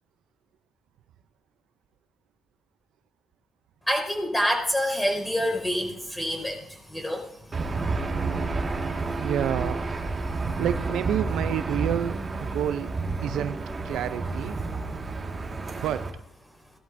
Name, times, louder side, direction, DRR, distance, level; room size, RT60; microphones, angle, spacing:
voice 1, 3.9-8.0 8.3-9.2 10.2-10.6, equal, 10° left, 1 dB, 5.1 m, -29 dB
Aircraft / Engine, 7.5-16.1, right 3 dB, 30° right, 1.8 m, -30 dB
voice 2, 9.2-9.8 10.6-12.9 13.2-13.6 13.8-14.6 15.8-16.1, right 10 dB, 80° right, 12 dB, 0.5 m, -29 dB
19.0 x 13.0 x 2.6 m, 0.71 s
cardioid pair, 90°, 0 cm